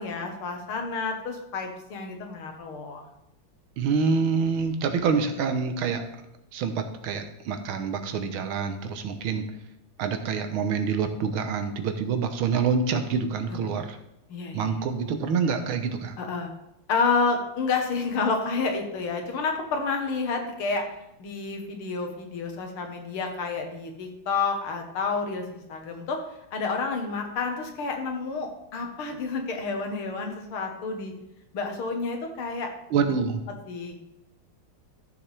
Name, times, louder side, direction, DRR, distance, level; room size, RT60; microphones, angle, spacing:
voice 1, 0.0-3.0 13.5-13.7 14.3-14.7 16.2-16.5 16.9-20.9 21.2-26.2 26.5-31.1 31.5-33.1 33.7-34.0, left 4 dB, 80° left, 4 dB, 2.2 m, -29 dB
voice 2, 3.8-6.0 6.5-9.4 10.0-14.0 14.5-16.1 32.9-33.4, right 5 dB, 75° right, 8 dB, 1.6 m, -26 dB
13.5 x 7.0 x 3.3 m, 0.85 s
omnidirectional pair, 2.4 m